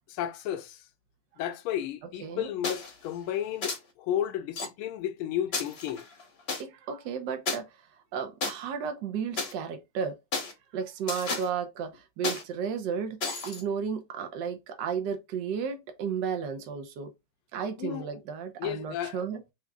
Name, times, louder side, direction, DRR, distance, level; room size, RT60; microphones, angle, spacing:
voice 1, 0.1-0.8 1.4-6.1 17.8-18.1 18.6-19.2, left 10 dB, 80° left, 1.4 m, -33 dB
voice 2, 2.2-2.5 6.6-7.8 8.1-10.2 10.7-17.1 17.5-19.4, right 7 dB, 60° right, 1.4 m, -33 dB
sound 1, 2.6-2.9 3.6-3.8 4.6-4.7 5.5-6.6 7.5-7.6 8.4-8.5 9.4-9.5 10.3-10.5 11.1-11.5 12.2-12.4 13.2-13.6, left 3 dB, 40° left, 0.9 m, -32 dB
6.0 x 3.0 x 2.4 m
omnidirectional pair, 2.4 m